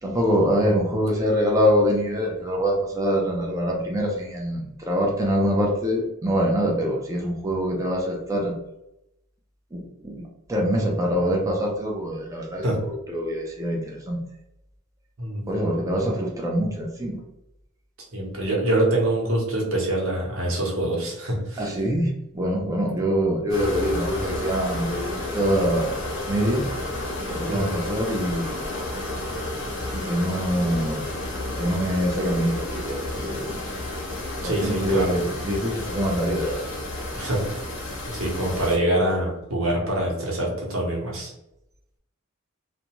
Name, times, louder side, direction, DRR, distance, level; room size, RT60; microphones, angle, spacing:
voice 1, 0.0-8.5 9.7-10.2 10.5-14.2 15.5-17.2 21.6-25.9 26.3-26.7 27.3-28.6 29.9-31.0 31.6-33.6 34.4-36.6, equal, 15° right, -1 dB, 0.5 m, -24 dB
voice 2, 18.1-21.6 27.5-27.7 34.4-35.2 37.1-37.4 38.1-41.3, right 1 dB, 90° right, -2 dB, 1.0 m, -25 dB
sound 1, 23.5-38.8, left 1 dB, 75° left, 0.8 m, -31 dB
2.5 x 2.2 x 2.9 m, 0.85 s
head